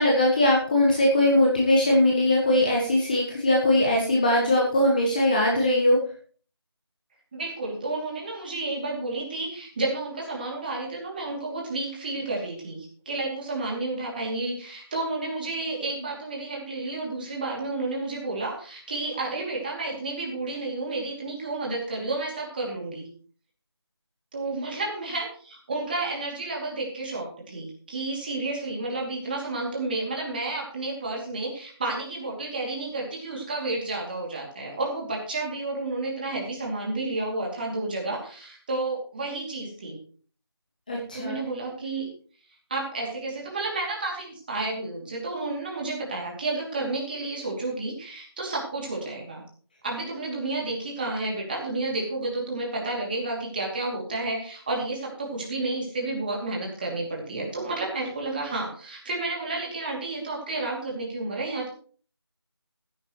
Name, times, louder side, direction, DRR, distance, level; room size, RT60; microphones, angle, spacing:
voice 1, 0.0-6.0 40.9-41.4, left 1 dB, 20° left, -2 dB, 1.3 m, -21 dB
voice 2, 7.3-23.1 24.3-40.0 41.1-42.1 42.7-49.4 49.8-61.7, right 2 dB, 20° right, -2 dB, 2.7 m, -31 dB
15.5 x 10.5 x 3.1 m, 0.43 s
figure-of-eight pair, 170°, 14 cm